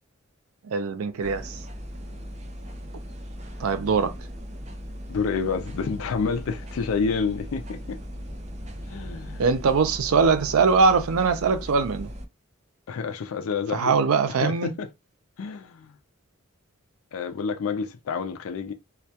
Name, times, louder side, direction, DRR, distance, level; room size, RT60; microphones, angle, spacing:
voice 1, 0.6-1.6 3.6-4.1 9.4-12.1 13.7-14.7, right 5 dB, 90° right, 0.4 m, -22 dB
sound 1, 1.2-12.3, equal, 30° right, 0.4 m, -38 dB
voice 2, 5.1-8.0 8.9-9.4 12.9-14.0 14.4-14.9 15.4-15.9 17.1-18.7, left 5 dB, 80° left, 0.4 m, -29 dB
2.2 x 2.1 x 2.7 m
head